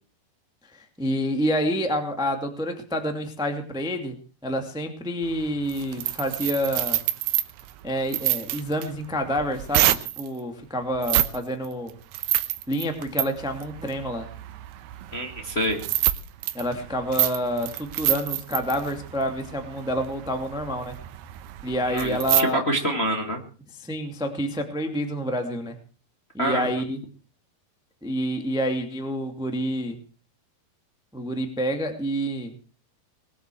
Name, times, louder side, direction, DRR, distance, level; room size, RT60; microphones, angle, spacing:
voice 1, 0.7-4.1 4.4-7.0 7.8-11.9 12.7-14.3 16.5-21.0 21.6-22.6 23.8-25.7 26.3-27.0 28.0-30.0 31.1-32.5, equal, ahead, 5 dB, 1.3 m, -28 dB
sound 1, 5.2-10.3 11.0-11.4 11.7-22.4, right 14 dB, 90° right, 3.0 m, -28 dB
voice 2, 15.1-15.8 21.9-23.4 26.4-26.7, right 1 dB, 25° left, 3 dB, 1.6 m, -26 dB
21.0 x 8.1 x 7.8 m, 0.39 s
omnidirectional pair, 4.6 m